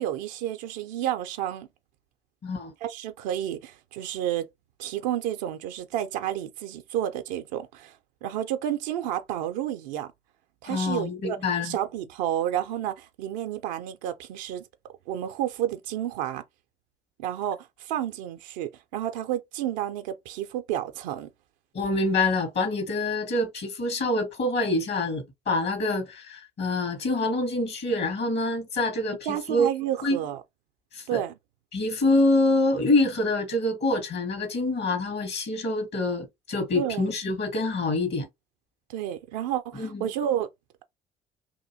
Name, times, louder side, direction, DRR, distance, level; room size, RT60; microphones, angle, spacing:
voice 1, 0.0-1.7 2.8-4.5 4.8-10.1 10.6-14.6 15.1-16.4 17.2-21.3 29.3-30.4 31.1-31.3 36.7-37.0 38.9-40.5, right 11 dB, 80° right, 0.4 m, -30 dB
voice 2, 10.6-11.8 21.7-29.7 30.0-30.2 30.9-31.2 31.7-38.3 39.7-40.1, left 2 dB, 55° left, 1.4 m, -26 dB
2.8 x 2.6 x 2.6 m
hypercardioid pair, 50°, 21 cm